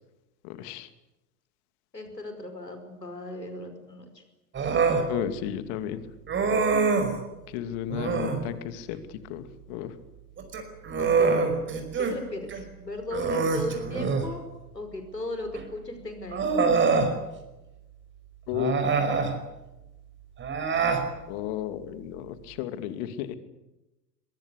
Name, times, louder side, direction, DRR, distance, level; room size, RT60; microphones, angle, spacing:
voice 1, 0.4-0.9 5.1-6.0 7.5-9.9 18.5-18.8 21.3-23.4, left 11 dB, 45° left, 11 dB, 2.6 m, -33 dB
voice 2, 1.9-4.2 11.0-11.4 12.0-14.4 14.7-16.4, left 1 dB, 85° left, 7 dB, 5.3 m, -36 dB
Human voice, 4.5-5.1 6.3-7.2 7.9-8.4 10.4-12.2 12.5-12.6 13.1-14.3 15.5-15.6 16.3-17.1 18.5-19.3 20.4-21.1, right 4 dB, 25° right, 5.3 m, -25 dB
23.5 x 22.5 x 8.4 m, 1.0 s
figure-of-eight pair, 90°, 48 cm